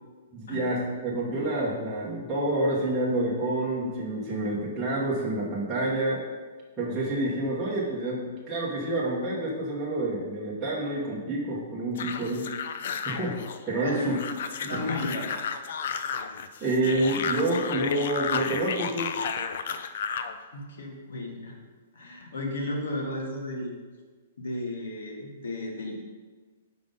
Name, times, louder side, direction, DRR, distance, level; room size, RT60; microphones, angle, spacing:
voice 1, 0.3-6.2 6.8-12.5 13.0-13.4 13.7-14.2 14.6-14.9 16.6-19.1, right 1 dB, 10° right, -8 dB, 1.0 m, -28 dB
sound 1, 12.0-20.3, left 7 dB, 45° left, 0.4 m, -33 dB
voice 2, 13.8-14.2 14.7-15.3 20.5-21.6 21.9-23.7 24.4-25.9, left 1 dB, 80° left, -1 dB, 1.8 m, -34 dB
5.8 x 5.1 x 5.3 m, 1.4 s
hypercardioid pair, 180°, 0 cm